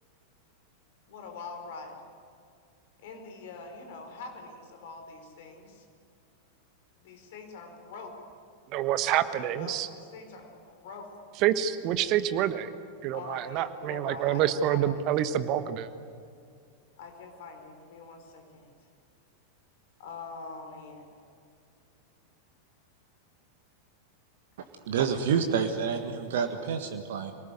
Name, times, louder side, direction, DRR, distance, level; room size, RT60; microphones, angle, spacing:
voice 1, 1.1-2.0 3.0-5.8 7.0-8.2 9.4-11.1 13.1-15.1 17.0-18.7 20.0-21.2, left 4 dB, 55° left, 4 dB, 4.6 m, -44 dB
voice 2, 8.7-9.9 11.4-12.7 13.0-15.9, right 11 dB, 40° right, 12 dB, 1.3 m, -27 dB
voice 3, 24.9-27.3, right 7 dB, 55° right, 6 dB, 1.7 m, -28 dB
26.0 x 19.0 x 9.5 m, 2.3 s
figure-of-eight pair, 90°, 0 cm